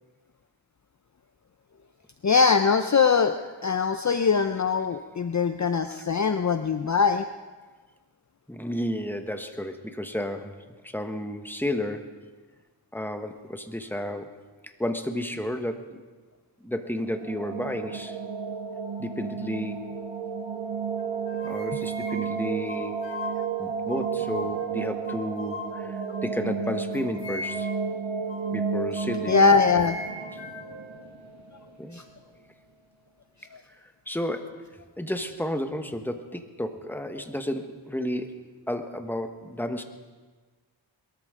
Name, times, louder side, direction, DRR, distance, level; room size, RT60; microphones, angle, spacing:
voice 1, 2.2-7.2 29.3-30.0 31.9-32.0, left 5 dB, 40° left, 8 dB, 0.6 m, -22 dB
voice 2, 8.5-10.6 10.8-12.2 12.9-14.3 14.6-16.0 16.6-18.2 19.0-20.0 21.4-23.0 23.6-27.7 28.5-29.4 30.3-30.4 31.8-32.0 34.1-34.6 35.0-38.4 38.7-39.8, left 1 dB, 5° left, 7 dB, 1.3 m, -32 dB
sound 1, 16.9-31.8, right 6 dB, 80° right, 1.4 m, -32 dB
sound 2, 21.0-23.5 23.9-24.8 25.1-26.4 26.9-27.8 28.3-28.5 29.0-30.8, left 2 dB, 65° left, 2.6 m, -40 dB
22.0 x 13.5 x 3.8 m, 1.3 s
cardioid pair, 45°, 47 cm